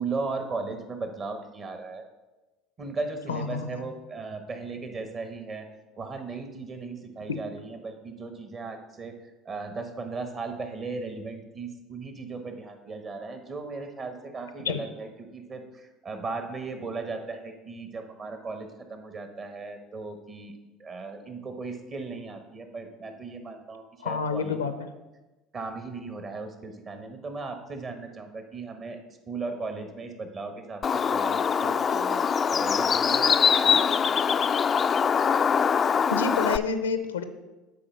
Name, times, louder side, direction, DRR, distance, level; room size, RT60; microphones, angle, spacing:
voice 1, 0.0-2.0 2.8-5.7 6.0-9.2 9.4-24.6 25.5-29.0 29.3-32.3 32.5-34.4, right 3 dB, 40° right, 6 dB, 1.3 m, -37 dB
voice 2, 3.3-3.8 14.6-14.8 24.0-24.9 36.1-37.2, left 5 dB, 85° left, 10 dB, 0.6 m, -28 dB
Bird, 30.8-36.6, left 6 dB, 35° left, 0.3 m, -23 dB
8.5 x 4.3 x 6.4 m, 1.1 s
hypercardioid pair, 70°, 0 cm